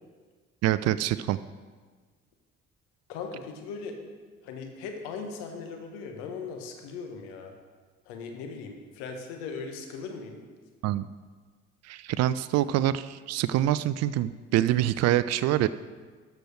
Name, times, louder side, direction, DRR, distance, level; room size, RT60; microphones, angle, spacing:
voice 1, 0.6-1.4 10.8-11.1 11.8-15.7, right 13 dB, 45° right, 15 dB, 0.4 m, -25 dB
voice 2, 3.1-3.9 4.4-7.5 8.0-10.4, left 5 dB, 65° left, 4 dB, 1.3 m, -38 dB
13.0 x 4.7 x 6.3 m, 1.4 s
figure-of-eight pair, 45°, 38 cm